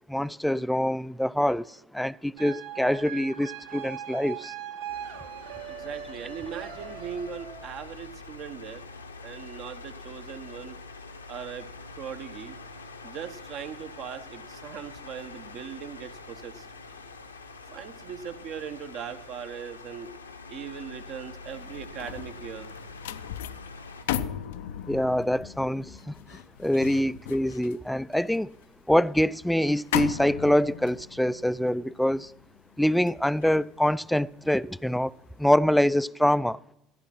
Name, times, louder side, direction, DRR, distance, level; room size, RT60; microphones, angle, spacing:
voice 1, 0.1-4.5 24.9-28.5 28.9-32.3 32.8-35.1 35.4-36.6, left 1 dB, 5° left, 0.4 m, -25 dB
sound 1, 2.4-7.9, right 10 dB, 70° right, 2.4 m, -40 dB
sound 2, 4.9-24.0, left 3 dB, 85° left, 1.0 m, -45 dB
voice 2, 5.7-8.9 9.2-10.8 11.3-11.7 12.0-12.6 13.0-16.7 17.7-20.1 20.5-22.7, right 7 dB, 50° right, 1.1 m, -39 dB
sound 3, 21.5-34.8 35.2-35.5, left 11 dB, 70° left, 0.5 m, -37 dB
14.5 x 10.5 x 5.9 m
figure-of-eight pair, 65°, 0 cm